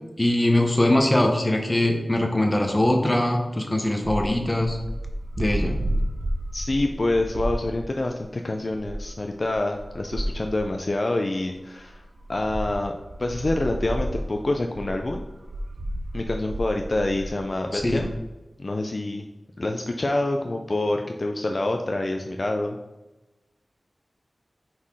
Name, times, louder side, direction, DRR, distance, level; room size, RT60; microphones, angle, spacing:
voice 1, 0.2-4.8 5.4-5.8 17.7-18.1, left 1 dB, 25° left, 2 dB, 0.8 m, -22 dB
sound 1, 4.0-8.2 8.7-10.7 11.5-11.6 11.8-18.2, right 1 dB, 60° right, 0.7 m, -31 dB
voice 2, 6.5-12.0 12.3-15.2 16.1-18.1 18.6-19.3 19.6-22.8, left 2 dB, 45° left, 3 dB, 0.4 m, -27 dB
5.6 x 4.3 x 4.8 m, 1.1 s
wide cardioid pair, 80°, 0 cm